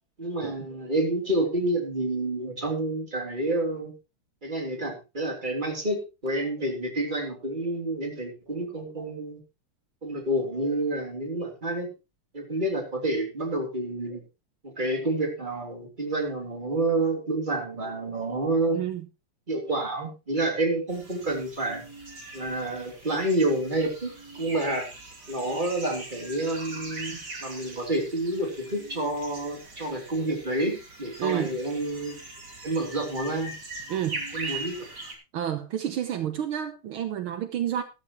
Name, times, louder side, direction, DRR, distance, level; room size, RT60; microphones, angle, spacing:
voice 1, 0.2-3.9 4.4-9.4 10.0-11.9 12.3-14.2 14.6-18.8 19.5-21.8 22.3-24.9 25.3-32.2 32.6-33.5 34.3-34.9, right 2 dB, 20° right, 2 dB, 3.4 m, -29 dB
voice 2, 18.7-19.1 31.2-31.6 33.9-34.6 35.3-37.8, right 10 dB, 75° right, 9 dB, 1.8 m, -30 dB
sound 1, 20.9-35.1, right 2 dB, 50° right, 3.7 m, -41 dB
13.5 x 13.0 x 3.1 m, 0.27 s
omnidirectional pair, 2.4 m